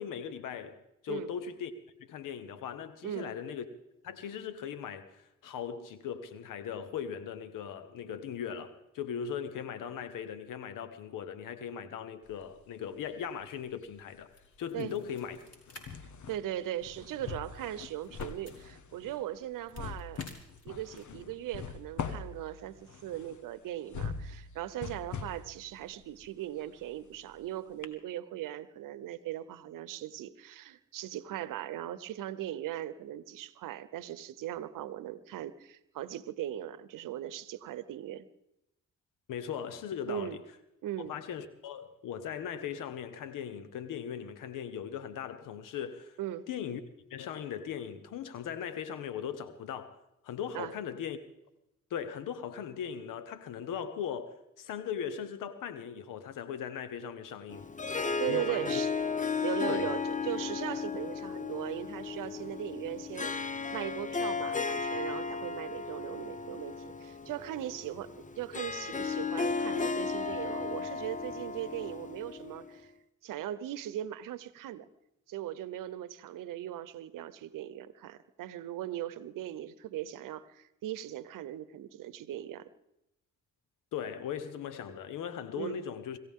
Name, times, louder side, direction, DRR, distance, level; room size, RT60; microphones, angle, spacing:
voice 1, 0.0-1.7 2.1-3.6 4.0-14.3 14.6-15.4 39.3-40.4 41.0-46.2 46.5-46.8 47.1-50.0 50.2-51.2 51.9-57.7 58.3-58.8 59.7-59.9 83.9-86.2, left 8 dB, 90° left, 1.1 m, -39 dB
sound 1, 12.2-13.4 13.7-27.4 27.8-27.9, left 6 dB, 70° left, 1.3 m, -43 dB
sound 2, 14.3-15.8 16.2-16.3 16.7-18.6 19.4-21.2, left 1 dB, 50° left, 5.1 m, -53 dB
voice 2, 16.3-20.4 20.6-38.3 40.1-40.4 40.8-41.1 46.2-46.5 50.5-50.7 58.0-58.9 59.4-72.9 73.2-74.9 75.3-82.7 85.6-85.8, right 12 dB, 90° right, 0.8 m, -39 dB
Harp, 57.5-72.8, left 5 dB, 25° left, 0.8 m, -35 dB
26.0 x 15.0 x 3.7 m
supercardioid pair, 50°, 31 cm